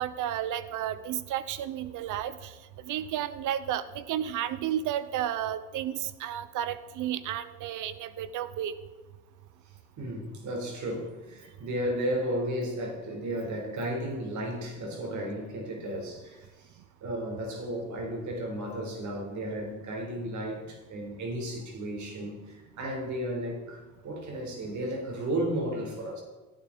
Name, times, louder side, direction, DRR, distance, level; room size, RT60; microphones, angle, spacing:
voice 1, 0.0-2.4 2.9-8.7, right 11 dB, 90° right, 14 dB, 1.0 m, -32 dB
voice 2, 10.0-16.7 17.0-26.2, right 1 dB, 70° right, 1 dB, 4.6 m, -34 dB
18.0 x 11.5 x 4.4 m, 1.2 s
cardioid pair, 90°, 30 cm